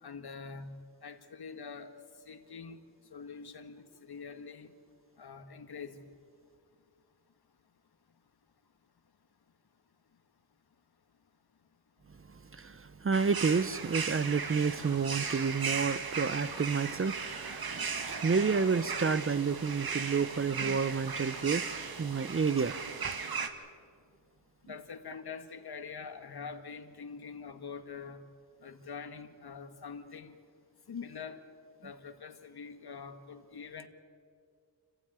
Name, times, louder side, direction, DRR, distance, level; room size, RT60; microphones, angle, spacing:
voice 1, 0.0-2.0 2.3-2.8 3.1-4.7 5.2-6.0 24.6-28.2 28.6-30.4 30.9-31.4 31.8-33.9, left 5 dB, 65° left, 7 dB, 1.8 m, -44 dB
voice 2, 12.5-17.7 18.0-22.8 23.0-23.1, right 5 dB, 30° right, 15 dB, 0.7 m, -30 dB
sound 1, 13.1-23.5, right 5 dB, 60° right, 1.9 m, -37 dB
29.0 x 13.0 x 8.9 m, 2.2 s
wide cardioid pair, 95°, 41 cm